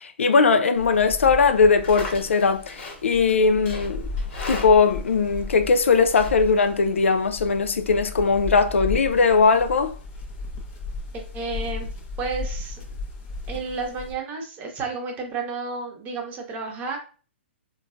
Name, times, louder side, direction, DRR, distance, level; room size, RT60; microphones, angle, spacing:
voice 1, 0.0-4.0 4.5-9.9, left 4 dB, 85° left, 0.4 m, -19 dB
sound 1, 0.8-14.1, left 3 dB, 35° left, 0.7 m, -35 dB
Livestock farm animals working animals, 1.6-7.3, left 3 dB, 60° left, 1.2 m, -40 dB
voice 2, 11.1-11.9 12.2-12.8 13.5-17.0, right 4 dB, 25° right, 0.8 m, -31 dB
3.8 x 2.3 x 2.4 m
hypercardioid pair, 130°, 7 cm